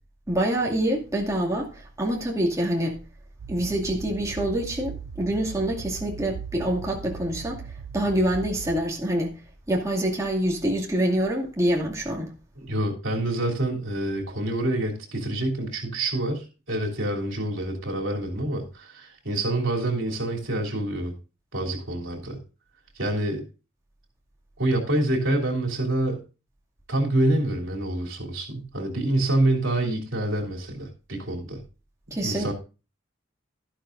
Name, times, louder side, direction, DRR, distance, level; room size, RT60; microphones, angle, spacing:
voice 1, 0.3-3.0 3.5-7.6 7.9-9.4 9.7-12.3 32.1-32.5, right 1 dB, 15° right, 2.3 m, -26 dB
sound 1, 3.4-8.8, right 6 dB, 85° right, 0.5 m, -38 dB
voice 2, 12.6-21.1 21.5-22.4 22.9-23.4 24.6-26.2 26.9-31.6 32.2-32.5, right 1 dB, 70° right, 3.3 m, -27 dB
12.5 x 11.5 x 2.6 m
head